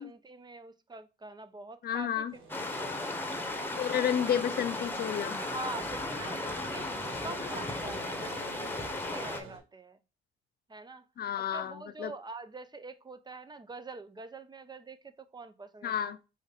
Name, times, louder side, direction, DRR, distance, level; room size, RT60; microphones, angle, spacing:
voice 1, 0.0-2.2 2.7-3.9 5.4-6.9 7.2-10.0 10.7-11.1 11.3-16.2, right 3 dB, 20° right, 0.5 m, -45 dB
voice 2, 1.8-2.3 3.8-5.4 11.2-12.1 15.8-16.2, left 9 dB, 50° left, 0.5 m, -31 dB
sound 1, 2.3-9.6, right 4 dB, 80° right, 1.5 m, -49 dB
sound 2, 2.5-9.4, left 2 dB, 10° left, 0.9 m, -36 dB
5.0 x 2.5 x 4.0 m
cardioid pair, 90°, 20 cm